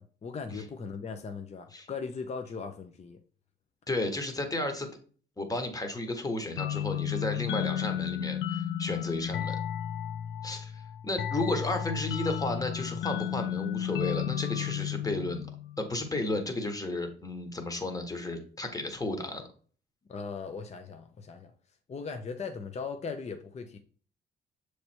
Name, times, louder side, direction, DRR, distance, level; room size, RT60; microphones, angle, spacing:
voice 1, 0.0-3.2 20.1-21.5 21.9-23.8, left 5 dB, 35° left, 6 dB, 0.6 m, -38 dB
voice 2, 3.9-4.9 5.4-9.6 10.4-15.5 15.8-19.4, left 2 dB, 20° left, 5 dB, 1.3 m, -33 dB
sound 1, 6.6-15.9, left 10 dB, 75° left, 0.5 m, -33 dB
6.7 x 3.3 x 4.4 m, 0.43 s
cardioid pair, 90°, 20 cm